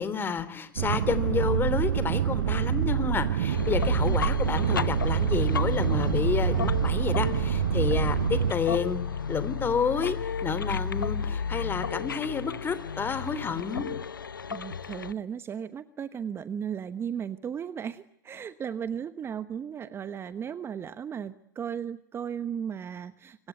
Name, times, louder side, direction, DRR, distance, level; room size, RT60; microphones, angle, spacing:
voice 1, 0.0-9.0 9.3-10.2 10.4-13.9, left 6 dB, 20° left, 13 dB, 3.3 m, -30 dB
sound 1, 0.8-8.5, right 11 dB, 70° right, 1.1 m, -26 dB
sound 2, 3.5-15.1, left 6 dB, 85° left, 1.1 m, -32 dB
voice 2, 14.5-23.5, right 8 dB, 25° right, 14 dB, 1.1 m, -35 dB
26.0 x 24.5 x 9.3 m, 0.68 s
hypercardioid pair, 100°, 11 cm